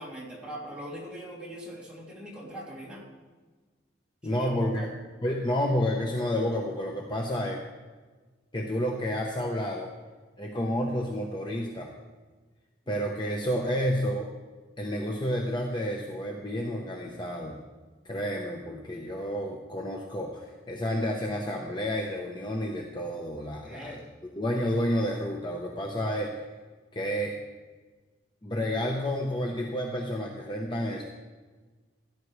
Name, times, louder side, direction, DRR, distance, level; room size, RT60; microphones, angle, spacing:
voice 1, 0.0-3.0 4.2-4.9 23.6-24.0, equal, 5° right, -6 dB, 2.8 m, -41 dB
voice 2, 4.2-4.9 5.2-7.6 8.5-9.9 10.4-11.9 12.9-14.3 14.8-17.6 18.0-24.0 24.3-26.3 26.9-27.3 28.4-31.0, equal, 25° left, 0 dB, 0.9 m, -30 dB
16.0 x 10.5 x 3.2 m, 1.3 s
head